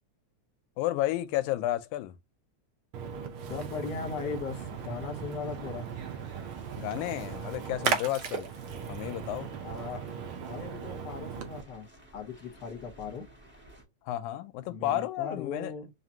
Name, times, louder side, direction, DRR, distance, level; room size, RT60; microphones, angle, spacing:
voice 1, 0.8-2.2 6.8-8.5 8.9-9.5 14.0-15.7, left 14 dB, 85° left, 2.0 m, -32 dB
Splash splatter, 2.9-11.6, right 7 dB, 75° right, 1.2 m, -37 dB
voice 2, 3.5-5.9 9.6-10.1 10.4-11.9 12.1-13.2 14.7-15.9, left 5 dB, 55° left, 1.2 m, -38 dB
sound 1, 4.5-13.8, right 1 dB, 10° right, 0.7 m, -53 dB
5.0 x 2.8 x 2.7 m
omnidirectional pair, 3.4 m